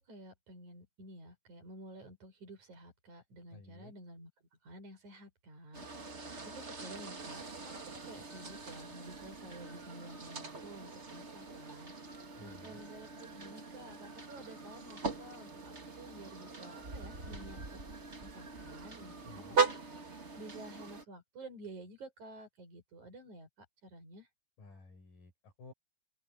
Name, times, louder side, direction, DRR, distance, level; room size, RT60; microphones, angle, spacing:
voice 1, 0.1-4.3 4.6-11.9 12.4-17.9 18.2-19.8 20.4-24.3, right 1 dB, 60° right, 7.7 m, -52 dB
voice 2, 3.5-3.9 12.4-12.8 19.2-19.6 24.6-25.7, left 3 dB, 90° left, 7.9 m, -54 dB
sound 1, 5.7-21.0, right 4 dB, 25° right, 1.6 m, -40 dB
open air
omnidirectional pair, 3.8 m